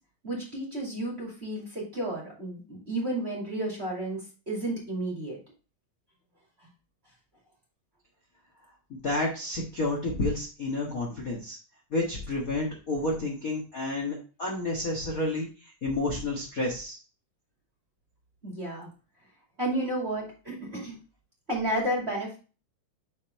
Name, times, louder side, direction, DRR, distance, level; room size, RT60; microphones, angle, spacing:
voice 1, 0.2-5.4 18.4-18.9 19.6-21.0 21.5-22.4, right 1 dB, 20° right, -3 dB, 2.2 m, -32 dB
voice 2, 8.9-11.6 11.9-17.0, left 2 dB, 40° left, -3 dB, 1.2 m, -30 dB
7.2 x 5.4 x 3.2 m, 0.34 s
omnidirectional pair, 3.8 m